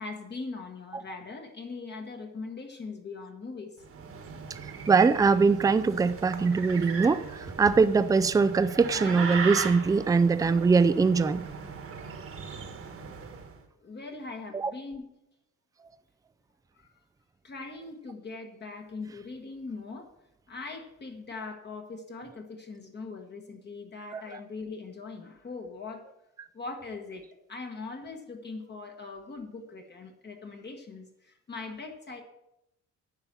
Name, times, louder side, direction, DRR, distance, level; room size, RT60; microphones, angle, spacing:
voice 1, 0.0-3.8 7.0-7.1 8.9-9.3 13.8-15.1 16.7-17.0 17.4-20.1 20.5-26.1 26.5-32.2, left 3 dB, 35° left, 1.2 m, -41 dB
sound 1, 3.8-13.6, right 5 dB, 45° right, 1.2 m, -38 dB
voice 2, 4.9-11.4 14.5-14.7 24.1-24.2, right 4 dB, 10° right, 0.4 m, -22 dB
9.7 x 5.6 x 7.3 m
cardioid pair, 140°, 31 cm